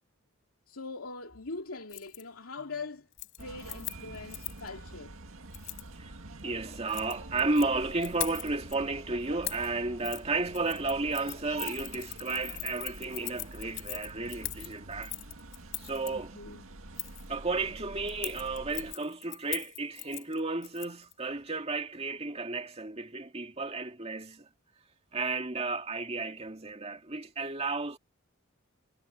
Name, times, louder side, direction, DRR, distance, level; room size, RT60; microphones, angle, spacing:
voice 1, 0.7-3.1 3.4-5.2 16.1-16.6, left 3 dB, 85° left, 2.6 m, -42 dB
Keys jangling, 1.9-2.2 2.6-2.8 3.1-4.7 5.5-5.9 6.7-7.7 8.0-8.8 9.4-9.7 10.0-10.2 10.5-16.1 17.0-17.3 18.1-21.1 21.4-21.5, left 17 dB, 60° left, 5.4 m, -40 dB
sound 1, 3.4-19.0, right 2 dB, 75° right, 2.1 m, -46 dB
voice 2, 5.9-15.1 15.8-16.3 17.3-24.5 25.1-28.0, right 3 dB, 30° right, 2.2 m, -33 dB
head